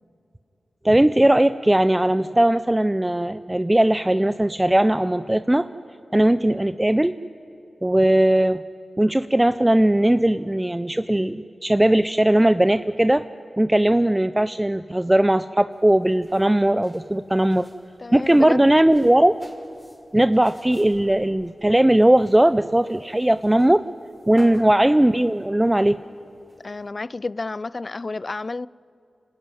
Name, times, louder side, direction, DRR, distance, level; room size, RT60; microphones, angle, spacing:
voice 1, 0.8-5.7 6.1-7.1 7.8-8.6 9.0-13.2 13.6-17.7 18.1-19.3 20.1-23.8 24.3-26.0, right 1 dB, 15° right, 0.5 m, -18 dB
sound 1, 15.7-26.9, equal, 5° left, 5.3 m, -51 dB
voice 2, 18.0-18.6 24.3-24.6 26.6-28.7, left 3 dB, 50° left, 0.4 m, -31 dB
27.5 x 11.0 x 9.7 m
cardioid pair, 45°, 0 cm